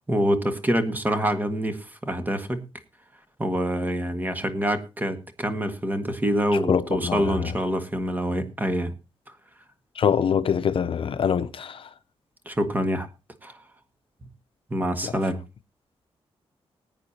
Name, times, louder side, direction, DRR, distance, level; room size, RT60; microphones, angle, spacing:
voice 1, 0.1-2.6 3.4-8.9 12.4-13.1 13.4-13.6 14.7-15.4, equal, 15° right, 1.7 m, -26 dB
voice 2, 6.7-7.2 10.0-11.8 15.0-15.1, left 7 dB, 60° left, 0.7 m, -24 dB
20.0 x 9.1 x 2.9 m
wide cardioid pair, 115°, 10 cm